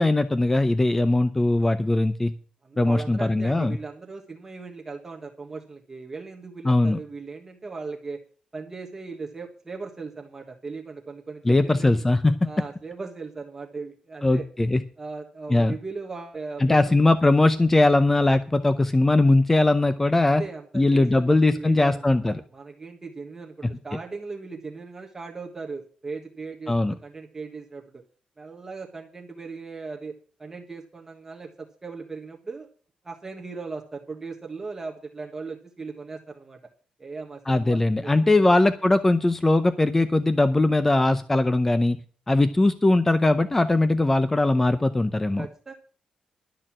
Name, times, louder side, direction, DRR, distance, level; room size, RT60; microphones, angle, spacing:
voice 1, 0.0-2.3 2.8-3.8 6.6-7.0 11.5-12.3 14.2-14.8 15.5-15.8 16.6-20.4 20.7-22.4 23.9-24.0 26.7-27.0 37.5-42.0 42.3-45.5, left 2 dB, 15° left, 11 dB, 0.6 m, -20 dB
voice 2, 2.6-8.2 8.5-12.0 12.4-14.4 15.0-17.0 20.2-28.0 28.4-32.7 33.0-36.6 37.0-38.5 45.4-45.7, right 4 dB, 20° right, 1 dB, 1.3 m, -38 dB
12.5 x 6.6 x 7.4 m, 0.41 s
wide cardioid pair, 150°, 2 cm